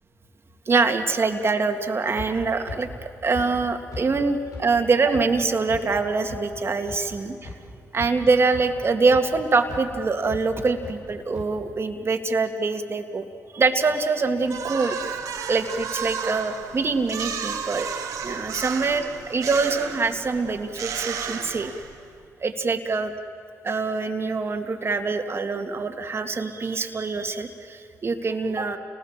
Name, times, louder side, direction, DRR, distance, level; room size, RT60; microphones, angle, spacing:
voice 1, 0.7-7.5 7.9-13.3 13.5-15.0 15.5-17.9 18.2-21.7 22.4-23.1 23.6-28.8, right 4 dB, 45° right, 6 dB, 2.3 m, -24 dB
sound 1, 2.2-2.3 2.7-2.8 3.3-3.4 3.9-4.0 4.5-4.6 5.1-5.2 5.7-5.8 6.3-6.4 6.9-7.0 7.4-7.5 7.9-8.2 8.5-8.6 9.1-9.2 9.7-9.8 10.3-10.4 10.8-10.9 11.3-11.4, left 3 dB, 75° left, 8.0 m, -35 dB
sound 2, 14.5-22.1, right 7 dB, 80° right, 2.0 m, -33 dB
30.0 x 19.5 x 7.5 m, 2.4 s
supercardioid pair, 55°, 6 cm